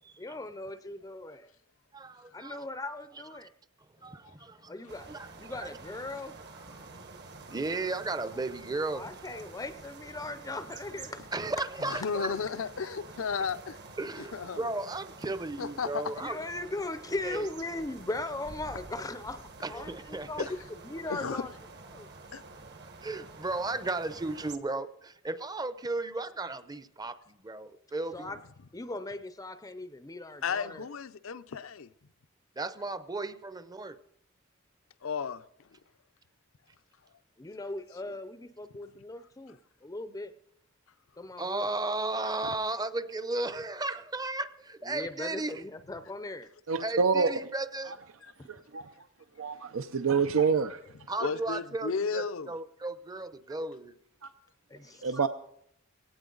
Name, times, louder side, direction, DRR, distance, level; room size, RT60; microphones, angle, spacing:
voice 1, 0.2-1.5 2.3-3.5 4.7-5.1 5.4-6.4 8.3-8.4 8.9-11.2 16.2-21.5 21.9-22.1 28.1-28.4 28.7-30.8 37.4-40.3 41.2-41.7 44.8-46.5 48.4-48.5 54.7-55.0, left 2 dB, 15° left, 0.5 m, -39 dB
voice 2, 1.9-2.6 3.3-3.4 4.0-4.7 5.1-5.7 7.5-9.0 11.3-12.3 14.0-16.4 17.2-17.5 19.6-20.5 23.0-28.3 32.6-34.0 41.4-45.6 46.8-47.9 51.1-54.0, right 2 dB, 20° right, 0.7 m, -35 dB
sound 1, 4.9-24.6, right 3 dB, 55° right, 1.4 m, -48 dB
voice 3, 11.8-13.8 14.3-14.7 15.6-16.0 20.4-20.5 21.1-21.4 22.3-22.4 30.4-31.9 35.0-35.4 48.2-48.3 51.2-52.5, left 5 dB, 70° left, 0.6 m, -33 dB
voice 4, 46.7-47.3 47.9-48.0 48.5-49.1 49.4-50.8 54.2-54.3 55.0-55.3, right 5 dB, 75° right, 0.6 m, -27 dB
17.5 x 17.5 x 3.9 m
head